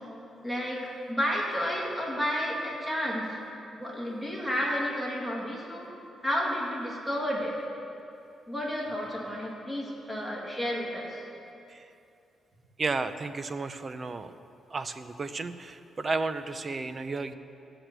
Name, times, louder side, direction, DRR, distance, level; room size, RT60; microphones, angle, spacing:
voice 1, 0.4-0.8 1.1-3.4 3.7-5.9 6.2-7.6 8.5-11.2, equal, 5° right, -4 dB, 2.2 m, -31 dB
voice 2, 12.8-14.3 14.7-17.3, right 3 dB, 25° right, 11 dB, 0.5 m, -33 dB
15.0 x 5.9 x 8.0 m, 2.6 s
wide cardioid pair, 180°, 0 cm